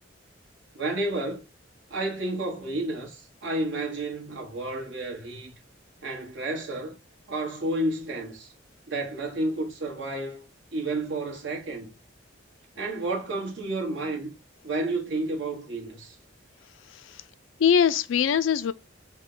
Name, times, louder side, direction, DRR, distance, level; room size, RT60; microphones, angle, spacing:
voice 1, 0.7-1.4 1.9-5.6 6.0-7.0 7.3-8.5 8.9-10.5 10.7-11.9 12.7-14.3 14.6-16.2, right 2 dB, 70° right, 1.3 m, -31 dB
voice 2, 16.9-17.2 17.6-18.7, left 7 dB, 80° left, 0.4 m, -22 dB
5.3 x 2.2 x 3.8 m
head